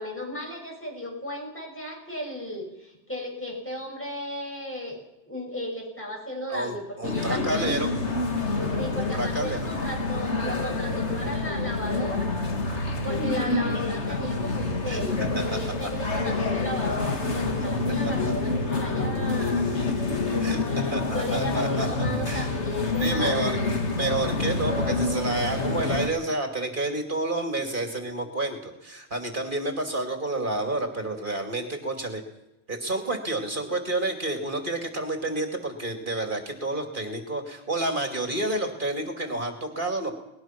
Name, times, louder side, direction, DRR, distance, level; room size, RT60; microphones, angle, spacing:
voice 1, 0.0-5.0 5.3-7.7 8.8-12.3 13.0-19.7 20.6-23.7, left 1 dB, 10° left, -1 dB, 7.0 m, -35 dB
voice 2, 6.5-7.9 8.9-9.7 13.9-14.2 14.9-15.4 20.4-21.9 22.3-22.5 23.0-23.6 23.9-32.2 32.7-40.1, right 2 dB, 45° right, 4 dB, 2.8 m, -30 dB
sound 1, 7.0-26.1, left 3 dB, 90° left, 2.2 m, -27 dB
21.5 x 20.0 x 6.0 m, 0.93 s
omnidirectional pair, 1.1 m